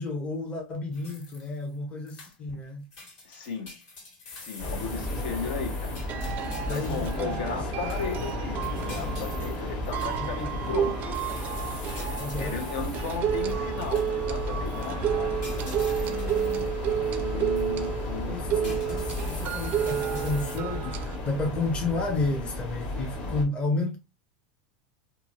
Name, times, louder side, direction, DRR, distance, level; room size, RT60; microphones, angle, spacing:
voice 1, 0.0-2.9 6.6-8.1 10.2-10.6 12.2-12.6 18.3-24.0, left 2 dB, 25° left, 0.8 m, -32 dB
sound 1, 0.9-1.7 2.1-2.6 2.9-7.3 7.9-14.4 14.7-14.9 15.4-17.1 17.6-17.7 18.2-20.6, left 2 dB, 55° left, 1.6 m, -46 dB
voice 2, 3.2-3.7 4.3-6.0 6.7-11.1 11.6-15.4 15.9-18.8, left 5 dB, 75° left, 1.0 m, -36 dB
sound 2, 4.6-23.4, left 1 dB, 40° left, 1.3 m, -33 dB
sound 3, 5.3-5.4 6.1-21.2, right 10 dB, 40° right, 0.4 m, -31 dB
2.6 x 2.5 x 2.9 m
supercardioid pair, 130°, 5 cm